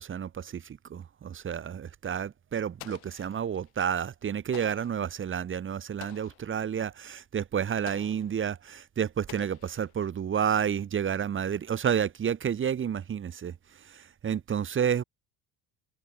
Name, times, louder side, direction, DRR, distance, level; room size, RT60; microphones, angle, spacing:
voice 1, 0.0-15.0, right 8 dB, 30° right, 1.2 m, -30 dB
Explosion, 2.8-3.7 4.5-5.1 6.0-6.5 7.9-8.4 9.3-10.2, left 24 dB, 80° left, 3.9 m, -48 dB
supercardioid pair, 100°, 38 cm